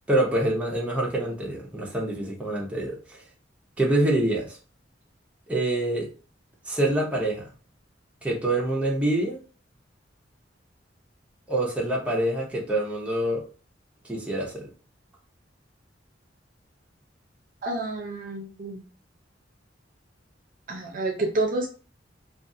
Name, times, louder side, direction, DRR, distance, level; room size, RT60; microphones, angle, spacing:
voice 1, 0.1-3.2 3.8-4.6 5.5-6.1 6.7-7.5 8.2-9.4 11.5-13.4 14.0-14.7, right 1 dB, 5° right, -3 dB, 0.7 m, -26 dB
voice 2, 17.6-18.8 20.7-21.7, right 2 dB, 45° right, 2 dB, 0.6 m, -29 dB
2.5 x 2.3 x 2.6 m, 0.35 s
head